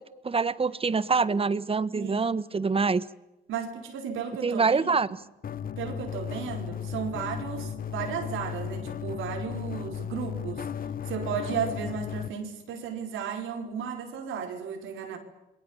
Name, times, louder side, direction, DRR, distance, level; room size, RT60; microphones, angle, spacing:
voice 1, 0.2-3.0 4.4-5.1, right 4 dB, 30° right, 16 dB, 1.3 m, -25 dB
voice 2, 1.9-2.3 3.5-5.2 5.8-10.7 11.0-15.2, right 7 dB, 85° right, 4 dB, 4.9 m, -34 dB
sound 1, 5.4-12.3, left 8 dB, 45° left, 1.1 m, -35 dB
28.5 x 21.5 x 7.3 m, 0.94 s
cardioid pair, 90°, 20 cm